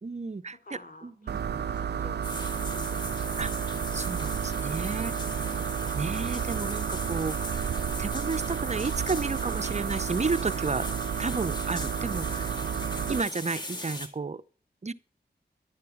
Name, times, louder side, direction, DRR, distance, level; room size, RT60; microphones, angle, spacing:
voice 1, 0.0-0.6 1.0-1.4 3.4-3.5 3.9-5.5 5.9-7.7 8.0-10.9 11.2-12.5 13.1-14.4 14.8-14.9, right 4 dB, 40° right, 0.8 m, -32 dB
voice 2, 0.6-2.4 2.7-3.3, left 3 dB, 50° left, 3.9 m, -49 dB
sound 1, 1.3-13.2, right 8 dB, 70° right, 0.5 m, -31 dB
sound 2, 2.2-14.1, left 2 dB, 25° left, 3.6 m, -39 dB
11.5 x 9.1 x 7.2 m
cardioid pair, 40°, 18 cm